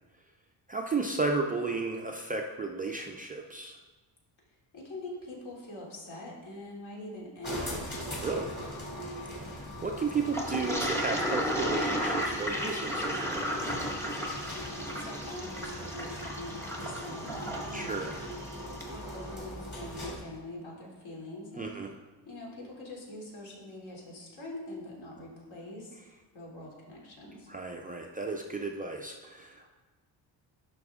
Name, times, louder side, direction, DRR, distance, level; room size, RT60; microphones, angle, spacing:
voice 1, 0.7-3.8 8.2-8.5 9.5-13.6 17.7-18.2 21.6-21.9 27.5-29.7, right 4 dB, 20° right, 1 dB, 0.3 m, -34 dB
voice 2, 4.7-8.3 14.5-17.9 18.7-21.7 22.3-26.0 26.3-27.5, left 1 dB, 60° left, -3 dB, 2.8 m, -44 dB
sound 1, 7.4-20.4, equal, 25° left, 2.4 m, -40 dB
Toilet flush, 10.3-18.9, equal, 5° left, 1.0 m, -34 dB
11.0 x 6.0 x 3.6 m, 1.3 s
cardioid pair, 160°, 44 cm